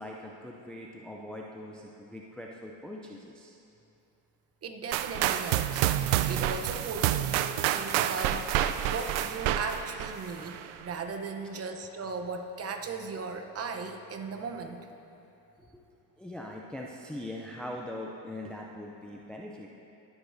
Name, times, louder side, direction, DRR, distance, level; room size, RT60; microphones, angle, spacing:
voice 1, 0.0-3.5 11.4-11.7 15.6-15.8 16.2-19.7, left 1 dB, ahead, -1 dB, 0.4 m, -42 dB
voice 2, 4.6-8.6 8.9-14.9, right 4 dB, 30° right, 6 dB, 0.9 m, -37 dB
sound 1, 4.9-10.8, right 12 dB, 65° right, 0.6 m, -28 dB
21.5 x 7.8 x 2.7 m, 2.8 s
supercardioid pair, 105°, 50 cm